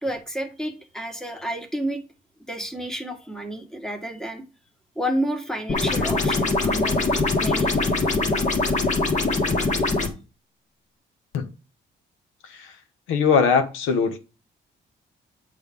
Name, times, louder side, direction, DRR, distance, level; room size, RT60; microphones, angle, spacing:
voice 1, 0.0-2.0 2.5-4.4 4.9-7.8, equal, 5° left, 1.5 m, -30 dB
sound 1, 5.7-10.1, left 3 dB, 35° left, 1.7 m, -22 dB
voice 2, 13.1-14.2, left 6 dB, 85° left, 1.0 m, -21 dB
8.2 x 3.4 x 5.2 m
cardioid pair, 90°, 20 cm